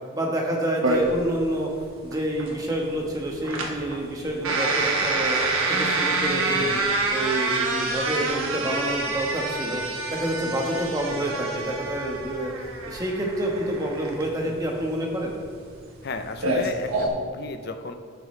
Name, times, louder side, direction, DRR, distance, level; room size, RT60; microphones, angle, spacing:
voice 1, 0.1-1.7 2.0-5.4 5.7-6.8 7.1-9.8 10.1-12.5 12.9-15.4, right 1 dB, 15° right, 0 dB, 1.2 m, -28 dB
sound 1, 0.8-17.1, right 3 dB, 90° right, 1.2 m, -27 dB
voice 2, 6.6-6.9 16.0-18.0, left 3 dB, 50° left, 7 dB, 0.6 m, -34 dB
11.0 x 8.3 x 3.2 m, 2.1 s
head